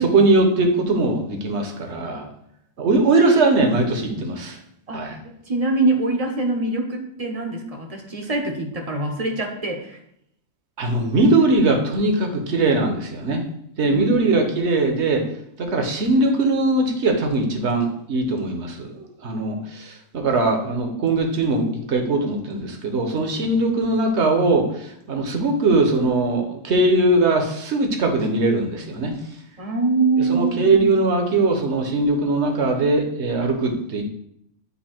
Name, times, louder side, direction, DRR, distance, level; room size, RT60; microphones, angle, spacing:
voice 1, 0.0-2.3 2.8-4.6 4.9-5.2 10.8-13.4 13.8-15.3 15.6-29.1 30.2-34.0, right 2 dB, 55° right, 4 dB, 1.2 m, -20 dB
voice 2, 4.9-10.0 13.9-14.4 29.6-30.9, right 3 dB, 30° right, 3 dB, 0.8 m, -24 dB
8.3 x 2.8 x 4.3 m, 0.73 s
omnidirectional pair, 1.4 m